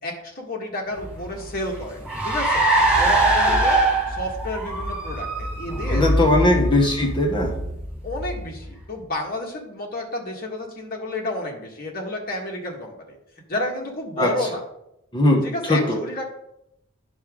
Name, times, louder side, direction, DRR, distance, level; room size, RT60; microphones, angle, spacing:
voice 1, 0.0-3.8 4.1-6.0 6.4-6.6 8.0-13.2 13.5-14.6 15.4-16.2, left 1 dB, 45° left, 0 dB, 1.7 m, -31 dB
Car, 1.0-8.8, right 2 dB, 5° right, 1.8 m, -23 dB
voice 2, 5.9-7.5 14.2-14.3 15.1-16.0, left 1 dB, 20° left, 1 dB, 1.1 m, -19 dB
10.0 x 6.0 x 3.7 m, 0.82 s
head